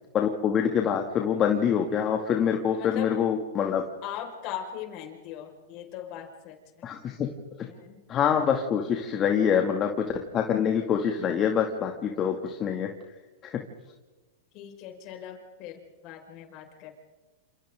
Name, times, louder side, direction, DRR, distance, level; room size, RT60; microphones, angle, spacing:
voice 1, 0.1-3.8 6.8-7.2 8.1-9.9 10.3-12.9 13.4-13.5, left 8 dB, 30° left, 2 dB, 2.6 m, -25 dB
voice 2, 2.7-3.2 4.0-6.9 7.7-8.0 9.2-9.6 14.5-17.0, left 10 dB, 45° left, 3 dB, 5.6 m, -40 dB
30.0 x 28.0 x 3.9 m, 1.2 s
hypercardioid pair, 115°, 0 cm